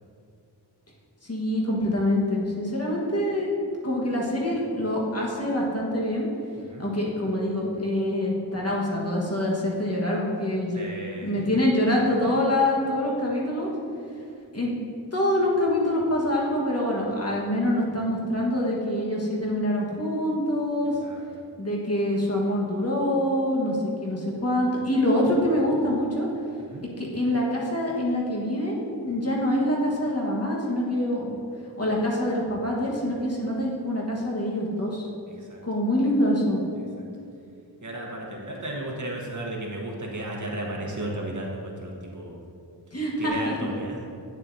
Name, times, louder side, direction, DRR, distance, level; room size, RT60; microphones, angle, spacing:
voice 1, 1.2-3.5 3.8-6.3 6.8-10.9 11.2-13.7 14.5-14.7 15.1-20.9 21.6-26.3 27.0-31.3 31.8-35.1 35.6-36.6 42.9-43.7, left 1 dB, 35° left, -3 dB, 1.6 m, -25 dB
voice 2, 10.7-11.3 21.0-21.2 26.7-26.8 35.4-35.6 37.0-37.1 37.8-42.4 43.2-44.0, right 1 dB, 45° right, -2 dB, 1.4 m, -34 dB
9.1 x 7.3 x 2.8 m, 2.5 s
wide cardioid pair, 75°, 41 cm